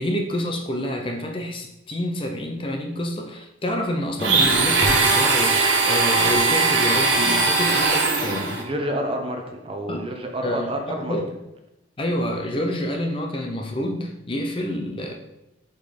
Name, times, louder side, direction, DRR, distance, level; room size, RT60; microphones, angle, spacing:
voice 1, 0.0-8.6 9.9-10.1 10.4-11.3 12.0-15.1, left 1 dB, 25° left, 3 dB, 0.5 m, -28 dB
Domestic sounds home sounds, 4.2-8.6, right 3 dB, 80° right, 1.1 m, -19 dB
voice 2, 8.6-11.2, right 1 dB, 30° right, 3 dB, 0.8 m, -29 dB
5.2 x 4.0 x 5.2 m, 0.89 s
head